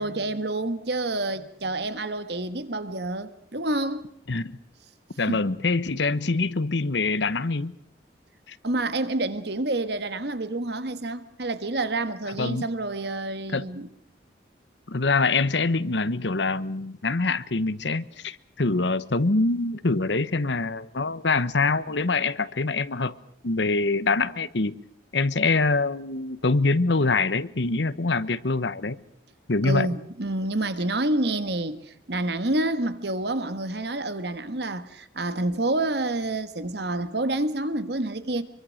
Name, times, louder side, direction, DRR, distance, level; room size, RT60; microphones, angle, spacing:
voice 1, 0.0-4.1 5.3-5.4 8.6-13.9 29.6-38.4, right 2 dB, 65° right, 1.4 m, -28 dB
voice 2, 4.3-4.6 5.2-7.7 8.5-8.6 12.4-12.7 13.5-13.7 14.9-23.1 23.4-24.7 25.1-29.0 29.5-29.9, left 3 dB, 75° left, 1.0 m, -24 dB
25.5 x 24.0 x 6.5 m
head